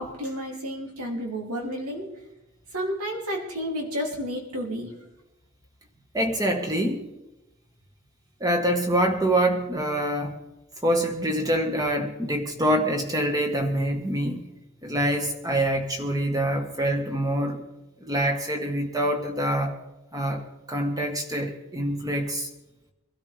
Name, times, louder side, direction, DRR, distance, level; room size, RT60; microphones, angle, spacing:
voice 1, 0.0-2.1 2.7-4.9, equal, 85° right, 0 dB, 3.0 m, -31 dB
voice 2, 6.1-7.0 8.4-10.4 10.8-14.4 14.8-17.6 18.0-19.7 20.1-20.4 20.7-22.5, right 1 dB, 15° right, 3 dB, 1.5 m, -25 dB
23.5 x 13.0 x 3.5 m, 0.98 s
head